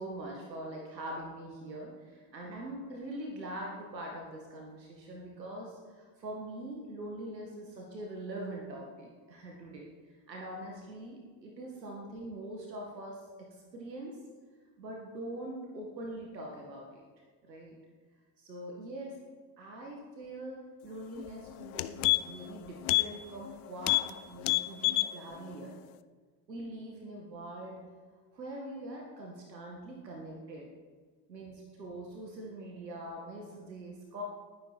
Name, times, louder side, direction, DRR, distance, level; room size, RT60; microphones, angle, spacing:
voice 1, 0.0-14.2 14.8-17.0 17.4-17.8 18.4-19.2 19.6-25.7 26.5-27.8 28.3-30.7 31.3-34.2, right 1 dB, 80° right, -1 dB, 2.0 m, -43 dB
sound 1, 21.2-21.3 21.6-22.5 22.8-23.1 23.4-23.5 23.8-24.1 24.4-25.1 25.5-25.6, left 20 dB, 60° left, 0.7 m, -27 dB
19.0 x 10.0 x 4.2 m, 1.5 s
figure-of-eight pair, 60°, 49 cm